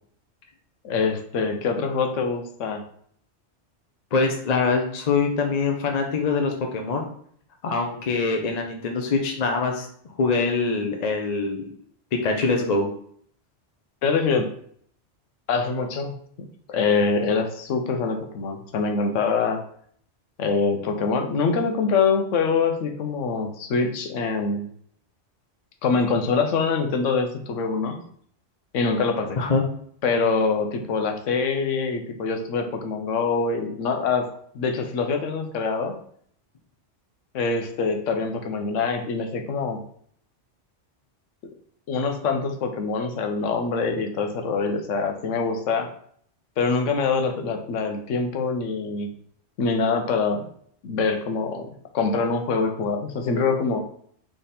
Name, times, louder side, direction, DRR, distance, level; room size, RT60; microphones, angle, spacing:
voice 1, 0.8-2.8 14.0-14.5 15.5-16.1 16.7-19.6 20.4-24.7 25.8-28.0 28.7-29.4 30.0-34.3 34.5-36.0 37.3-39.8 41.9-45.9 46.6-49.1 49.6-50.4 50.8-53.8, left 4 dB, 85° left, 5 dB, 1.1 m, -24 dB
voice 2, 4.1-7.1 7.6-9.9 10.2-11.7 12.1-12.9 29.4-29.6, left 4 dB, 45° left, 2 dB, 0.6 m, -24 dB
3.6 x 3.4 x 4.2 m, 0.62 s
omnidirectional pair, 1.2 m